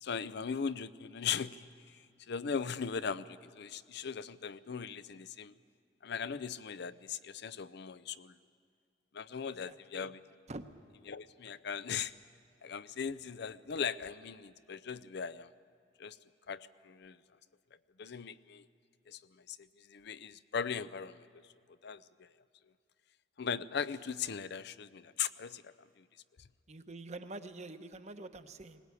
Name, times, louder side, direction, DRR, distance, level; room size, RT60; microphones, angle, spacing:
voice 1, 0.0-1.6 2.3-5.5 6.0-8.3 9.1-10.2 11.1-12.1 12.6-15.5 16.0-16.2 16.5-17.2 18.0-18.7 19.1-19.2 19.5-19.6 19.9-21.4 21.8-22.0 23.4-25.7, left 6 dB, 60° left, 15 dB, 0.6 m, -38 dB
voice 2, 9.5-10.1 10.5-10.6 26.7-28.8, right 2 dB, 40° right, 9 dB, 0.9 m, -46 dB
20.5 x 19.0 x 8.3 m, 2.3 s
head